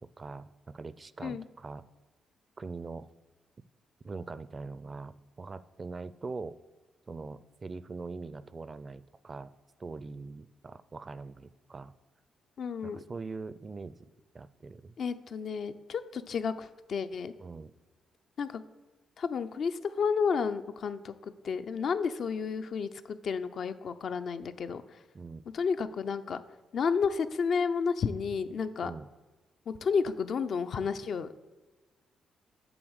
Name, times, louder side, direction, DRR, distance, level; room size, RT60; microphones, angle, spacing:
voice 1, 0.2-1.8 2.6-3.1 4.0-6.6 7.1-9.5 9.8-11.9 12.8-13.9 14.3-14.9 17.4-17.7 25.1-25.4 28.8-29.1, right 4 dB, 40° right, 15 dB, 0.4 m, -42 dB
voice 2, 12.6-13.0 15.0-17.3 18.4-18.6 19.2-24.8 25.5-26.4 26.7-28.9 29.7-31.3, left 5 dB, 65° left, 10 dB, 0.5 m, -31 dB
7.9 x 3.6 x 6.3 m, 1.2 s
supercardioid pair, 55°, 0 cm